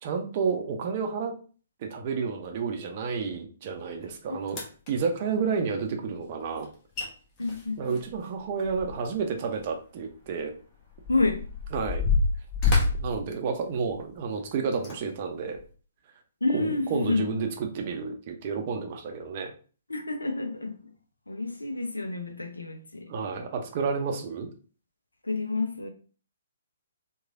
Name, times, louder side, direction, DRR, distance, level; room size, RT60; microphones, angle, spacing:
voice 1, 0.0-1.4 1.8-4.6 4.9-6.7 7.8-10.5 11.7-12.0 13.0-15.6 16.5-19.5 23.1-24.5, right 5 dB, 40° right, 0.5 m, -30 dB
sound 1, 4.0-4.1 4.5-4.9 6.6-6.7 7.0-7.1 7.4-9.2 9.6-9.7 10.4-14.1 14.7-15.0 15.6-15.7, left 4 dB, 25° left, 0.8 m, -28 dB
voice 2, 7.4-7.9 11.1-11.4 16.4-17.4 19.9-20.9 21.3-23.1 25.2-25.9, left 3 dB, 75° left, 0.5 m, -29 dB
3.1 x 2.2 x 2.5 m
figure-of-eight pair, 125°, 0 cm